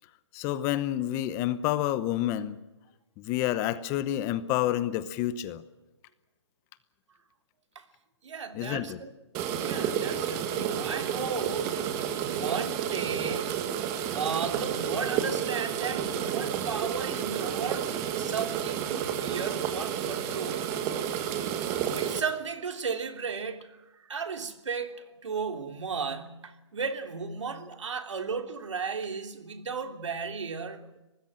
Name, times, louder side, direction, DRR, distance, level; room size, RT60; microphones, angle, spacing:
voice 1, 0.3-2.6 3.2-5.6 8.5-9.0, left 13 dB, 20° left, 0.9 m, -29 dB
voice 2, 8.2-9.1 9.6-11.8 12.2-13.6 14.1-20.7 22.0-31.0, right 5 dB, 80° right, 3.2 m, -35 dB
sound 1, 9.3-22.2, right 9 dB, 20° right, 1.7 m, -31 dB
24.0 x 20.0 x 7.6 m
hypercardioid pair, 165°, 15 cm